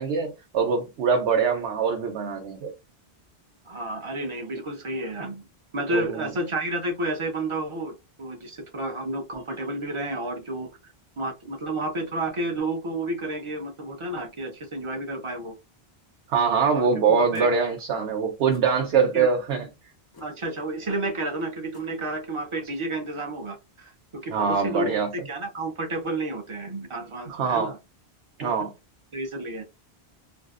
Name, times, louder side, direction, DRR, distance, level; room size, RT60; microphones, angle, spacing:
voice 1, 0.0-2.7 5.9-6.3 16.3-19.7 24.3-25.1 27.3-27.7 28.4-28.7, right 5 dB, 80° right, 0.9 m, -23 dB
voice 2, 3.7-5.5 5.7-10.7 11.2-15.5 16.4-17.5 17.9-18.1 19.1-19.3 20.2-27.8 28.4-28.5 29.1-29.6, right 2 dB, 40° right, 0.5 m, -31 dB
sound 1, 17.3-17.5 18.5-18.7 20.1-20.3 21.7-21.9, left 4 dB, 40° left, 0.3 m, -45 dB
2.6 x 2.1 x 2.3 m
omnidirectional pair, 1.1 m